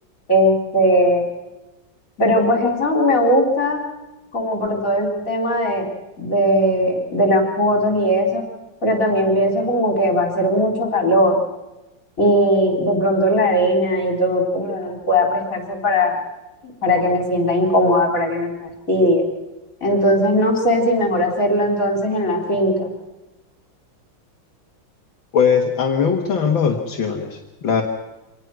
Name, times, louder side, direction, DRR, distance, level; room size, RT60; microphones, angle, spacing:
voice 1, 0.3-1.2 2.2-3.8 4.3-5.9 6.2-8.4 8.8-11.4 12.2-16.2 16.8-18.5 18.9-19.3 19.8-22.9, equal, 40° left, 2 dB, 4.6 m, -18 dB
voice 2, 25.3-27.8, left 6 dB, 70° left, 2 dB, 2.3 m, -20 dB
26.0 x 19.0 x 6.1 m, 1.0 s
omnidirectional pair, 2.3 m